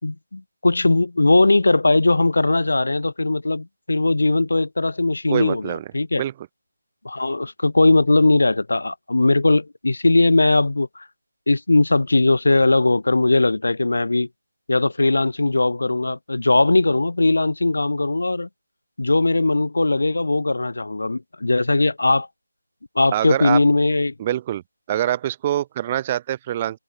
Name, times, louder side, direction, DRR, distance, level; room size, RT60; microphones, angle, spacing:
voice 1, 0.0-6.2 7.0-11.1 11.5-14.3 14.7-18.5 19.0-22.3 23.0-24.1, left 2 dB, 70° left, 5.5 m, -19 dB
voice 2, 5.3-5.8 6.2-6.3 23.1-23.6 24.2-24.6 24.9-26.8, right 12 dB, 20° right, 6.3 m, -24 dB
open air
figure-of-eight pair, 165°, 0 cm